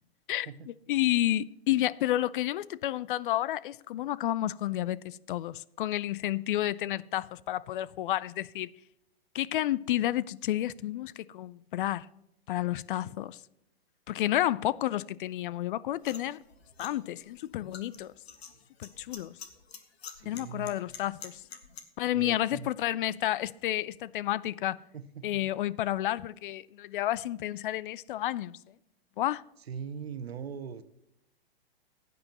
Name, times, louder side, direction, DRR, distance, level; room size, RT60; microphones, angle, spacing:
voice 1, 0.3-8.7 9.3-12.1 12.5-13.4 14.1-16.4 16.8-18.1 18.8-19.3 20.2-21.4 22.0-24.8 25.2-28.6 29.2-29.4, left 13 dB, 55° left, 0.5 m, -31 dB
sound 1, 16.0-21.8, left 6 dB, 80° left, 1.7 m, -47 dB
voice 2, 20.2-20.7 22.1-22.7 25.2-25.3 29.7-30.8, right 7 dB, 80° right, 1.0 m, -40 dB
16.5 x 9.4 x 3.0 m
hypercardioid pair, 115°, 31 cm